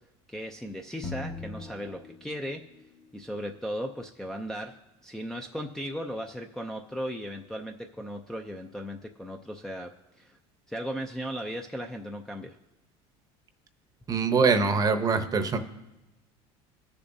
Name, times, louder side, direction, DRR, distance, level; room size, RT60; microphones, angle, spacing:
voice 1, 0.3-2.6 3.1-4.8 5.0-10.4 10.7-12.6, equal, 5° left, 0 dB, 0.5 m, -36 dB
sound 1, 1.0-2.8, left 4 dB, 30° left, 0.9 m, -40 dB
voice 2, 14.1-15.6, right 4 dB, 25° right, 9 dB, 0.8 m, -23 dB
20.0 x 6.8 x 2.7 m, 1.0 s
supercardioid pair, 125°, 14 cm